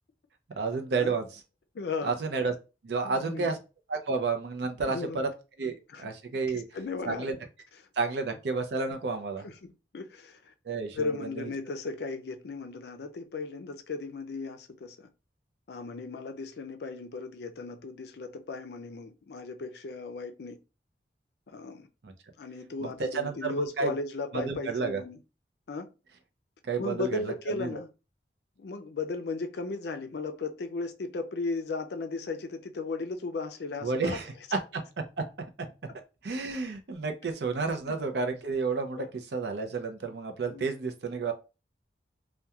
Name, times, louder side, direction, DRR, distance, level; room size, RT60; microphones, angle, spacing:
voice 1, 0.6-1.3 2.0-2.6 2.8-3.6 3.9-5.3 5.6-6.6 7.0-7.4 8.0-9.5 10.6-11.5 22.0-22.1 22.8-23.9 24.3-25.0 26.6-27.8 33.8-34.8 35.2-35.3 36.2-39.0 39.3-41.3, right 4 dB, 65° right, 0.5 m, -31 dB
voice 2, 1.7-2.1 3.0-3.6 4.9-5.2 5.9-6.1 6.5-7.4 9.4-10.5 10.9-15.1 15.7-20.6 21.5-21.9 22.4-25.2 25.7-25.9 26.8-27.9 28.6-34.2 37.2-37.3 37.9-38.0 38.9-39.1 40.5-40.6, left 3 dB, 60° left, 0.4 m, -36 dB
2.8 x 2.2 x 2.3 m
head